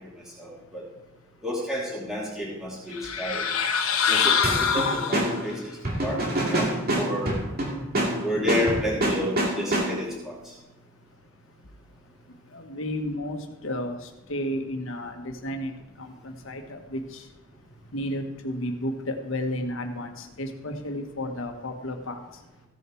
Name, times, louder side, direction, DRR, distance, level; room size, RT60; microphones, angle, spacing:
voice 1, 0.4-0.8 1.4-3.4 4.1-5.5 6.0-6.2 6.5-6.6 6.9-7.4 8.2-10.5, left 1 dB, ahead, -6 dB, 2.5 m, -30 dB
sound 1, 2.9-5.5, left 6 dB, 85° left, 1.1 m, -24 dB
sound 2, 4.4-10.2, right 1 dB, 45° right, 2.2 m, -27 dB
voice 2, 12.5-15.7 16.0-17.2 17.9-22.2, left 1 dB, 65° left, 5 dB, 1.4 m, -32 dB
15.5 x 7.0 x 4.6 m, 0.98 s
head